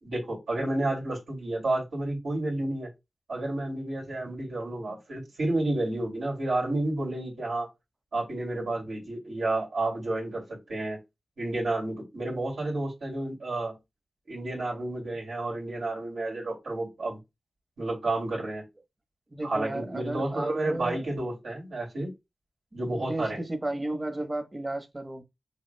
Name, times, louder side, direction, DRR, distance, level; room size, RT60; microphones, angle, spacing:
voice 1, 0.0-2.9 3.3-7.7 8.1-11.0 11.4-13.7 14.3-17.2 17.8-18.6 19.4-22.1 22.7-23.4, right 2 dB, 90° right, 2.7 m, -31 dB
voice 2, 19.3-21.1 22.9-25.2, right 1 dB, 35° right, 1.1 m, -34 dB
6.8 x 2.6 x 2.3 m
cardioid pair, 45°, 0 cm